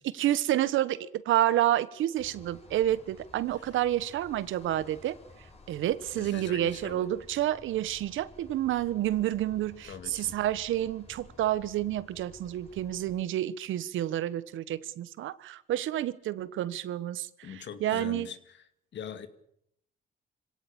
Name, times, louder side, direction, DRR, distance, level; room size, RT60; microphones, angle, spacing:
voice 1, 0.2-5.2 5.7-17.3 17.8-18.3, right 13 dB, 80° right, 17 dB, 1.2 m, -29 dB
sound 1, 2.2-13.2, left 2 dB, 30° left, 6.4 m, -54 dB
voice 2, 6.1-7.1 9.8-10.4 17.4-19.3, left 8 dB, 65° left, 10 dB, 2.4 m, -43 dB
25.5 x 17.0 x 8.7 m, 0.75 s
cardioid pair, 90°, 20 cm